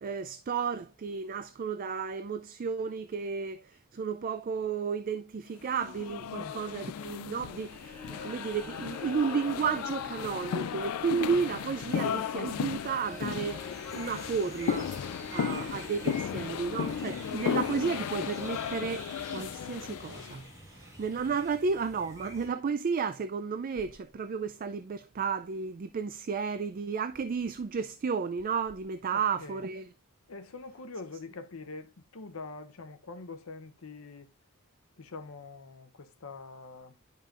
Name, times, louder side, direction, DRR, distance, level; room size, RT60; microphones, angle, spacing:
voice 1, 0.0-13.7 14.0-14.9 15.3-29.9, right 5 dB, 40° right, 0.4 m, -33 dB
sound 1, 5.7-20.4, left 8 dB, 90° left, 0.3 m, -35 dB
sound 2, 7.5-19.7, left 2 dB, 10° left, 1.9 m, -46 dB
sound 3, 13.0-22.5, equal, 15° right, 2.2 m, -48 dB
voice 2, 29.1-29.6 30.3-34.3 35.0-36.9, left 3 dB, 65° left, 0.7 m, -44 dB
10.5 x 5.5 x 2.5 m
head